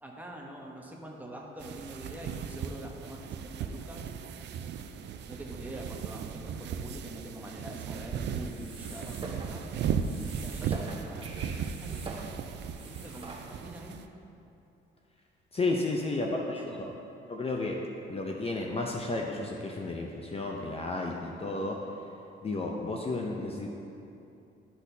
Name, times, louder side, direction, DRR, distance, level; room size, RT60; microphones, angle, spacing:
voice 1, 0.0-4.1 5.3-9.6 10.4-12.1 12.8-14.0 16.0-16.9, right 1 dB, 10° right, -1 dB, 1.0 m, -44 dB
sound 1, 1.6-14.1, right 7 dB, 65° right, 0.4 m, -37 dB
sound 2, 8.4-13.8, right 3 dB, 25° right, 1.2 m, -44 dB
voice 2, 15.5-16.9 17.3-17.7 18.1-21.8 22.4-23.7, left 2 dB, 30° left, 0 dB, 0.5 m, -32 dB
12.0 x 4.1 x 2.7 m, 2.8 s
cardioid pair, 90°, 20 cm